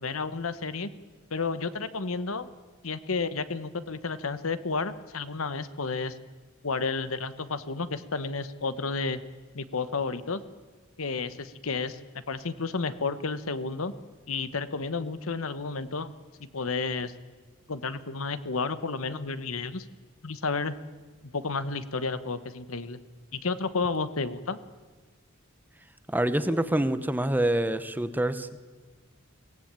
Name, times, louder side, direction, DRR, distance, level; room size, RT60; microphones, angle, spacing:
voice 1, 0.0-0.9 1.3-2.5 2.8-6.2 6.6-9.2 9.5-10.4 11.0-12.0 12.3-13.9 14.3-16.1 16.4-17.1 17.7-19.9 20.2-20.7 21.3-23.0 23.3-24.6, left 4 dB, 90° left, 13 dB, 1.1 m, -31 dB
voice 2, 26.1-28.6, right 1 dB, 10° right, 12 dB, 0.8 m, -26 dB
23.5 x 17.0 x 8.9 m, 1.4 s
head